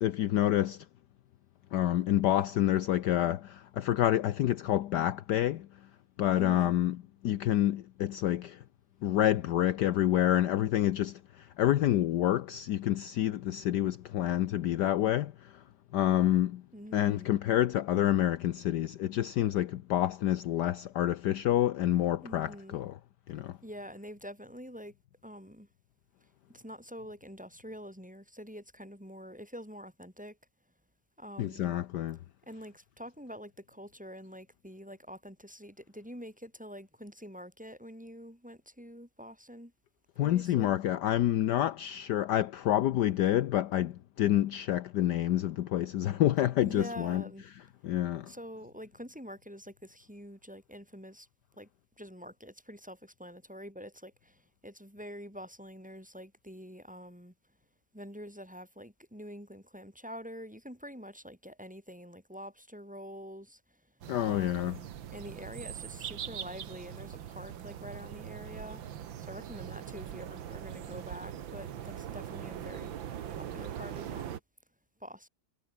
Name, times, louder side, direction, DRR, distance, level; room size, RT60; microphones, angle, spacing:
voice 1, 0.0-0.8 1.7-5.7 6.2-7.0 7.2-8.6 9.0-15.6 15.9-16.6 16.9-22.9 23.3-23.6 31.4-32.2 40.2-47.2 47.8-48.3 64.1-64.8, left 12 dB, 70° left, 1.3 m, -28 dB
voice 2, 6.4-6.7 16.7-17.4 22.2-22.8 23.6-24.9 25.2-25.7 26.5-30.4 31.2-31.7 32.5-39.7 40.2-40.7 46.6-47.5 48.2-51.3 51.6-51.7 52.0-57.3 57.9-63.6 64.2-64.8 65.1-72.9 73.4-74.4 75.0-75.3, equal, 5° right, 5.7 m, -46 dB
sound 1, 64.0-74.4, right 10 dB, 85° right, 2.0 m, -41 dB
omnidirectional pair, 2.1 m